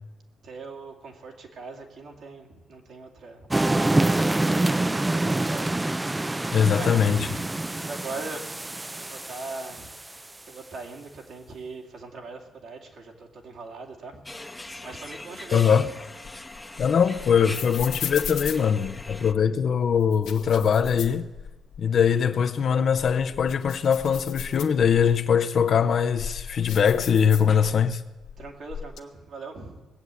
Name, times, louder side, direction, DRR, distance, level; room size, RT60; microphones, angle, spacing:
voice 1, 0.4-3.5 4.6-5.8 6.7-7.4 7.7-8.4 9.0-9.9 10.5-14.2 14.8-15.9 28.4-29.9, right 3 dB, 65° right, 2.5 m, -40 dB
sound 1, 3.5-10.2, right 2 dB, 15° right, 0.5 m, -26 dB
voice 2, 6.5-7.3 15.5-15.9 16.8-21.3 21.8-28.0, left 7 dB, 55° left, 0.7 m, -22 dB
sound 2, 14.3-19.3, left 2 dB, 10° left, 0.9 m, -41 dB
sound 3, 16.0-19.4 20.0-21.8 22.2-22.3 22.8-25.2 25.8-27.9 28.2-29.0, left 8 dB, 80° left, 1.2 m, -37 dB
19.0 x 7.9 x 8.4 m
cardioid pair, 90°, 0 cm